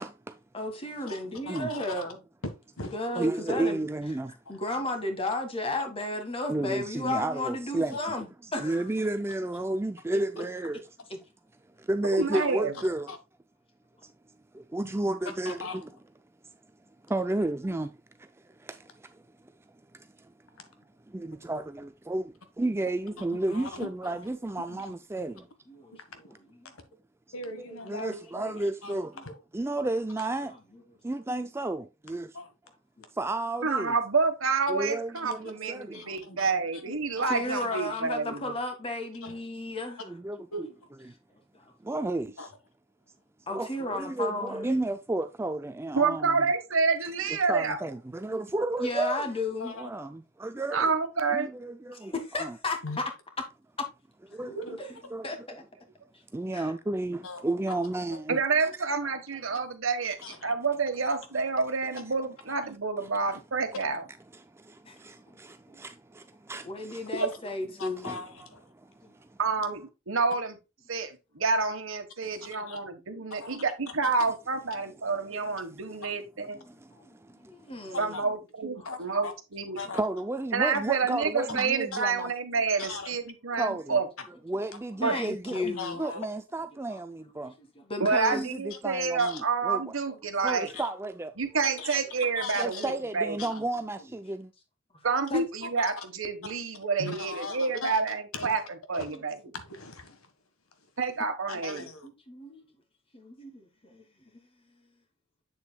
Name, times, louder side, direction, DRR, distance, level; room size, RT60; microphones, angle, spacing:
voice 1, 0.0-0.4 1.5-1.7 3.2-4.4 6.5-8.0 8.6-10.8 11.8-13.1 14.5-15.8 17.0-17.9 18.2-19.5 19.9-20.3 21.1-25.5 27.7-29.2 29.5-30.5 31.0-32.4 33.1-34.0 34.7-36.0 40.1-40.7 41.8-42.5 43.5-46.5 47.3-49.3 49.8-51.0 51.3-52.6 54.3-54.6 55.1-55.6 56.3-58.7 59.1-59.2 63.0-63.1 64.3-67.1 67.8-68.2 68.7-69.4 72.2-72.3 76.7-77.9 79.9-82.3 83.6-84.0 84.3-87.5 88.3-89.9 90.4-91.3 91.9-92.0 92.6-94.5, right 2 dB, 10° right, 0.3 m, -32 dB
voice 2, 0.5-2.2 2.9-3.8 4.5-8.8 12.3-12.4 25.7-26.3 26.6-26.7 29.2-29.3 33.0-33.1 36.9-40.0 43.5-44.7 48.8-49.7 51.9-53.0 54.8-54.9 55.2-55.4 56.5-56.7 64.8-65.0 65.3-65.4 65.7-65.8 66.6-68.1 69.0-69.1 73.1-73.2 76.5-78.3 85.0-86.0 86.9-87.0 87.3-88.4 90.1-90.2 95.3-95.4 99.0-99.2 101.8-102.6 103.1-104.0, left 2 dB, 25° left, 1.7 m, -34 dB
voice 3, 1.5-2.0 2.4-3.6 7.9-8.1 13.1-13.2 14.8-14.9 15.4-15.9 20.6-20.7 23.2-24.3 24.7-25.3 25.9-26.2 27.3-29.0 29.2-29.4 30.2-30.3 32.3-32.5 35.9-36.6 37.2-37.3 37.7-38.0 39.2-39.4 40.5-40.7 42.4-42.5 49.6-50.1 52.8-53.0 54.3-54.9 57.2-57.4 60.2-60.5 67.2-67.4 67.8-68.6 72.7-72.8 73.3-73.6 73.9-74.1 77.9-78.2 78.8-79.3 79.7-80.0 81.5-81.6 81.9-82.0 82.8-83.2 85.5-86.3 88.7-88.8 89.2-89.4 90.7-90.9 91.6-92.9 93.4-93.6 95.6-96.0 97.0-98.6 98.9-99.1 99.5-100.3 100.8-100.9 101.5-102.1, left 3 dB, 90° left, 1.5 m, -40 dB
voice 4, 12.1-12.7 33.6-38.4 45.9-47.8 50.7-51.5 58.3-60.2 60.4-64.0 69.4-70.6 70.9-76.6 78.0-79.8 80.5-84.1 85.0-85.2 88.0-90.7 91.4-93.4 95.0-98.6 98.9-99.3 101.0-101.8, right 4 dB, 65° right, 1.3 m, -28 dB
7.9 x 7.2 x 2.3 m
head